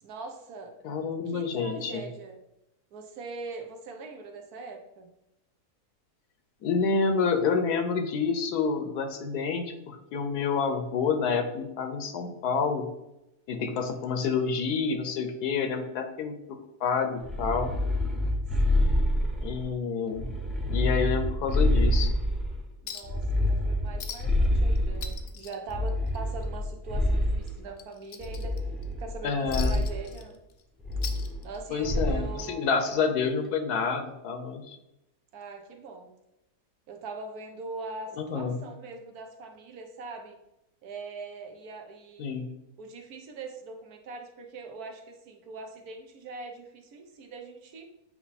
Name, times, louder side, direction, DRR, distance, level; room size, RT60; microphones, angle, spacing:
voice 1, 0.0-0.7 1.3-2.4 2.9-5.1 13.7-14.2 18.6-19.0 22.8-28.6 29.0-30.4 31.4-33.3 35.3-36.1 36.9-40.4 40.8-42.4 42.8-47.9, right 3 dB, 75° right, 4 dB, 1.3 m, -42 dB
voice 2, 0.8-2.0 6.6-12.9 13.5-17.7 19.4-20.3 20.7-22.1 29.2-29.8 31.7-34.8 38.2-38.6 42.2-42.5, left 5 dB, 80° left, 7 dB, 1.3 m, -28 dB
sound 1, 17.2-19.7 20.1-22.6 23.0-25.2 25.7-27.6 28.2-29.2 29.5-30.0 30.8-31.5 31.8-32.3, left 1 dB, ahead, 0.3 m, -27 dB
Chink clink, 22.9-23.2 23.5-23.6 24.0-24.5 24.8-26.5 26.8-27.0 27.4-28.8 29.5-30.6 30.9-31.8 32.9-33.0, left 7 dB, 60° left, 0.8 m, -42 dB
7.8 x 3.0 x 4.1 m, 0.89 s
omnidirectional pair, 1.7 m